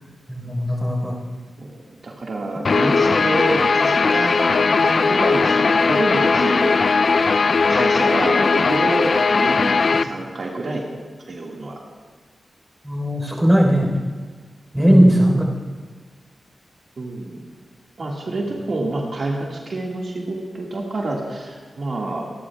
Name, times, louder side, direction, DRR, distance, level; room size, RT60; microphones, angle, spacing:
voice 1, 0.3-1.1 12.8-14.0 14.7-15.4, equal, 5° right, 0 dB, 4.1 m, -17 dB
voice 2, 1.6-6.8 7.7-10.8 11.3-11.8 14.8-15.4 17.0-17.4 18.0-22.3, right 2 dB, 60° right, -2 dB, 1.9 m, -27 dB
Guitar, 2.6-10.0, left 4 dB, 60° left, 0.4 m, -18 dB
26.0 x 11.5 x 2.4 m, 1.5 s
cardioid pair, 55°, 0 cm